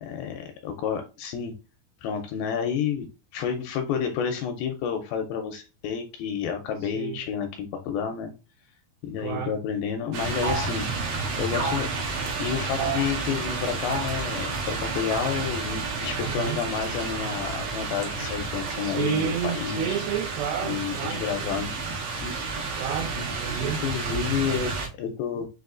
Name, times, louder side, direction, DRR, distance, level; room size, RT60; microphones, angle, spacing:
voice 1, 0.0-1.5 2.0-3.1 3.3-8.3 9.0-10.9 11.4-20.0 20.6-21.7 22.2-22.6 23.2-23.3 23.6-25.5, left 7 dB, 80° left, 5 dB, 2.2 m, -30 dB
voice 2, 9.2-9.6 16.2-16.6 18.8-21.6 22.8-23.8 24.1-24.2, right 9 dB, 85° right, 0 dB, 3.4 m, -31 dB
sound 1, 10.1-24.9, right 4 dB, 70° right, 2.6 m, -31 dB
sound 2, 10.4-10.7 11.5-11.9 12.8-13.1 13.9-14.2 15.1-15.4 16.8-17.3 18.2-18.9, right 3 dB, 35° right, 0.9 m, -33 dB
6.5 x 2.6 x 2.4 m, 0.30 s
omnidirectional pair, 4.7 m